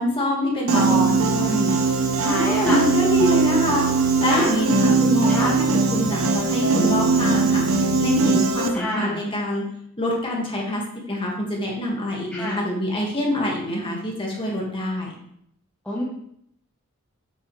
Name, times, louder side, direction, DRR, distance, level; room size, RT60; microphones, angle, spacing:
voice 1, 0.0-9.7 10.0-15.1, left 1 dB, 25° left, -2 dB, 2.0 m, -26 dB
voice 2, 0.7-1.2 2.2-2.8 4.3-4.5 5.3-5.6 8.7-9.2 12.3-12.6 15.8-16.0, equal, 5° left, -6 dB, 1.1 m, -27 dB
Piano, 0.7-8.7, right 4 dB, 70° right, 0.9 m, -20 dB
8.1 x 6.2 x 3.3 m, 0.70 s
head